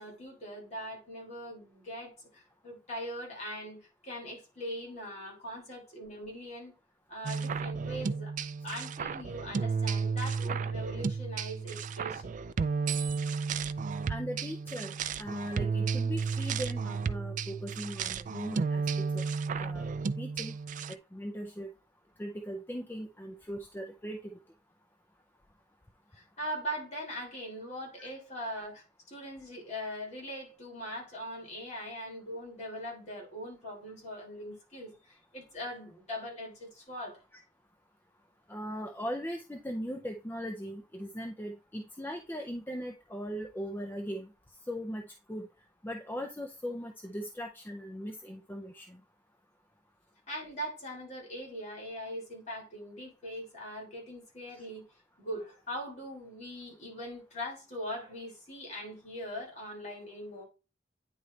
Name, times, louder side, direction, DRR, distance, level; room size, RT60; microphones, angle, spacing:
voice 1, 0.0-6.7 7.1-8.3 8.6-12.4 26.1-37.2 50.3-54.9 55.2-60.5, equal, 40° left, 3.1 m, -41 dB
sound 1, 7.2-20.9, right 5 dB, 45° right, 0.3 m, -33 dB
voice 2, 14.1-19.2 19.5-20.6 20.9-21.7 22.2-24.4 28.0-28.1 38.5-44.3 44.7-45.5 45.8-49.0 54.5-54.6, equal, 10° left, 0.5 m, -39 dB
9.4 x 3.2 x 3.9 m
head